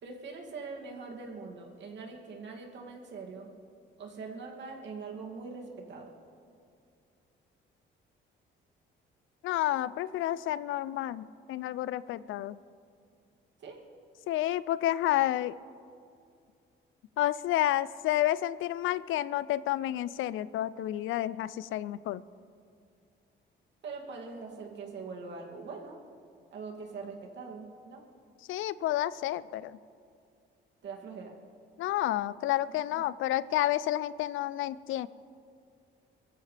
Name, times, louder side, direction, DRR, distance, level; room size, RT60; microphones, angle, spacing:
voice 1, 0.0-3.5 4.0-6.1 13.6-13.8 23.8-26.0 26.5-28.0 30.8-31.3 32.7-33.0, right 4 dB, 65° right, 0 dB, 2.6 m, -43 dB
voice 2, 9.4-12.6 14.3-15.6 17.2-22.2 28.5-29.8 31.8-35.1, left 13 dB, 85° left, 18 dB, 0.5 m, -30 dB
23.5 x 14.5 x 3.4 m, 2.4 s
cardioid pair, 90°, 20 cm